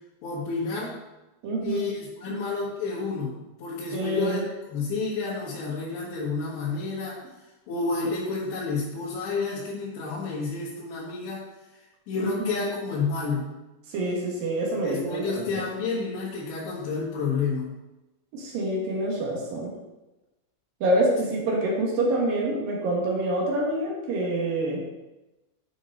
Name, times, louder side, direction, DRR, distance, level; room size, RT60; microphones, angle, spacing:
voice 1, 0.2-1.0 1.6-4.4 4.7-7.2 7.7-11.4 12.1-13.5 14.8-17.7, left 4 dB, 65° left, -9 dB, 3.6 m, -30 dB
voice 2, 1.4-1.8 2.3-2.4 3.9-4.4 12.2-12.7 13.9-15.6 18.3-19.7 20.8-24.8, right 1 dB, 60° right, -3 dB, 2.7 m, -27 dB
9.3 x 6.2 x 3.9 m, 1.0 s
omnidirectional pair, 5.8 m